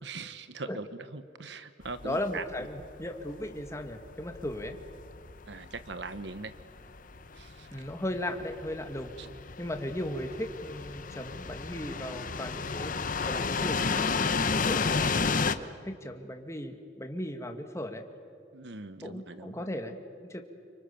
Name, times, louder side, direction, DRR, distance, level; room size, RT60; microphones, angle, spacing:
voice 1, 0.0-2.4 5.5-6.5 7.3-7.7 9.2-9.3 18.5-19.7, right 3 dB, 70° right, 11 dB, 1.1 m, -41 dB
sound 1, 1.8-15.6, left 4 dB, 50° left, 1.0 m, -32 dB
voice 2, 2.0-4.8 7.7-9.1 9.6-12.9 13.2-15.5 15.8-18.0 19.0-20.4, left 1 dB, 15° left, 5 dB, 2.1 m, -37 dB
29.5 x 25.5 x 7.2 m, 2.3 s
head